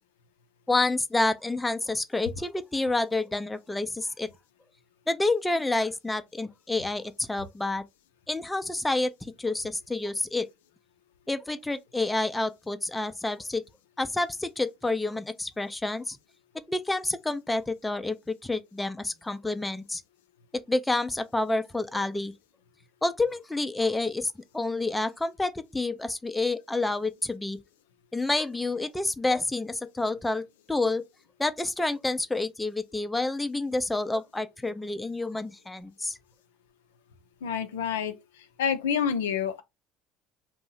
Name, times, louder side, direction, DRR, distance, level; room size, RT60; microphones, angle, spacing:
voice 1, 0.7-4.3 5.1-7.8 8.3-10.5 11.3-13.6 14.0-16.2 16.7-20.0 20.5-22.3 23.0-27.6 28.1-31.0 31.4-36.2, left 2 dB, 10° left, 0.4 m, -29 dB
voice 2, 37.4-38.1 38.6-39.6, left 7 dB, 85° left, 0.4 m, -27 dB
2.7 x 2.0 x 3.8 m
hypercardioid pair, 65°, 0 cm